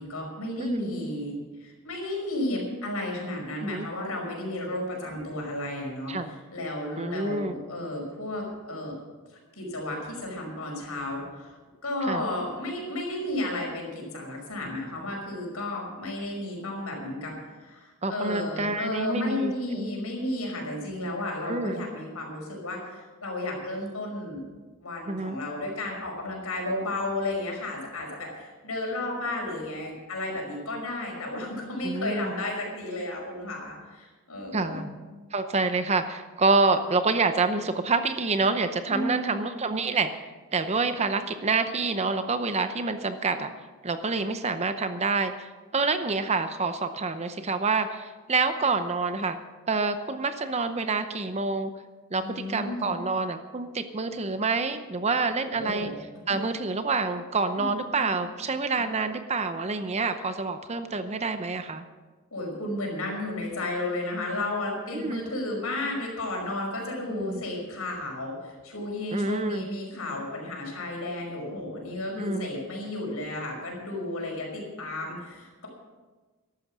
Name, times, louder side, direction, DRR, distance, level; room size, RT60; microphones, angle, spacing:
voice 1, 0.0-1.3 1.6-8.9 9.6-11.6 11.8-24.4 24.8-34.9 38.9-39.5 52.2-52.9 55.4-55.9 56.3-56.4 57.6-57.7 58.0-58.1 62.3-75.7, left 1 dB, 75° left, 0 dB, 5.4 m, -33 dB
voice 2, 0.6-0.9 3.6-3.9 6.1-6.3 7.0-7.5 12.1-12.3 18.0-19.9 21.5-21.8 25.1-25.4 31.8-32.3 34.5-35.0 35.3-40.1 40.5-43.5 43.8-49.4 49.7-51.7 52.1-55.9 56.3-61.8 64.9-65.2 67.1-67.4 69.1-69.7 72.2-72.5, right 3 dB, 30° right, 9 dB, 0.7 m, -27 dB
14.5 x 11.5 x 6.1 m, 1.3 s
head